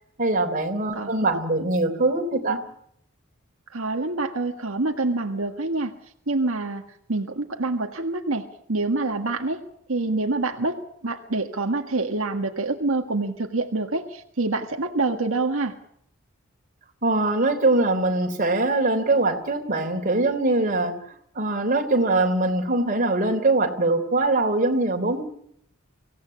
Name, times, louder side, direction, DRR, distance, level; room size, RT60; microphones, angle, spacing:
voice 1, 0.2-2.6 17.0-20.9 21.3-25.2, right 2 dB, 40° right, 4 dB, 3.4 m, -22 dB
voice 2, 3.7-5.9 6.3-6.8 7.1-9.6 9.9-15.7, right 2 dB, 80° right, 3 dB, 1.6 m, -26 dB
25.0 x 17.0 x 8.6 m, 0.72 s
head